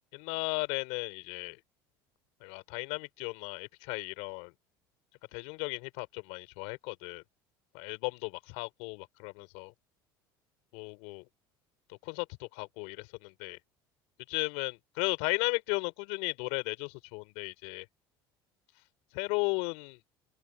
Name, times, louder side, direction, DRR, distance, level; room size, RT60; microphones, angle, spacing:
voice 1, 0.1-1.6 2.4-4.5 5.3-7.2 7.7-9.7 10.7-11.2 11.9-13.6 14.3-17.9 19.1-20.0, left 30 dB, 70° left, 3.5 m, -35 dB
open air
hypercardioid pair, 75°, 12 cm